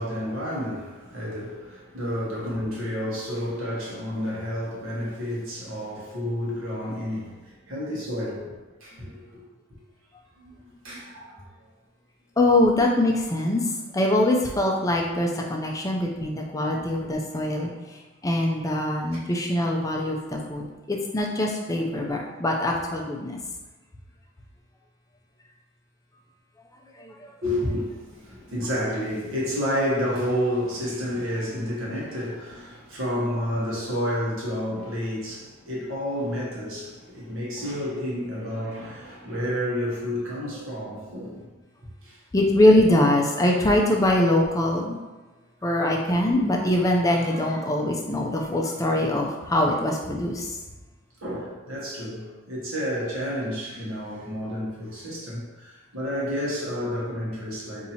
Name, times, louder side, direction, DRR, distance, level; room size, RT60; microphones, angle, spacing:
voice 1, 0.0-8.5 8.8-9.4 10.4-11.4 27.4-41.5 42.0-42.2 45.6-45.9 51.2-57.9, equal, 70° right, -5 dB, 1.1 m, -30 dB
voice 2, 12.4-13.6 13.9-17.7 18.2-23.4 27.0-27.1 42.3-45.0 45.6-50.6, left 1 dB, 15° left, 0 dB, 0.3 m, -23 dB
2.8 x 2.7 x 4.2 m, 1.2 s
head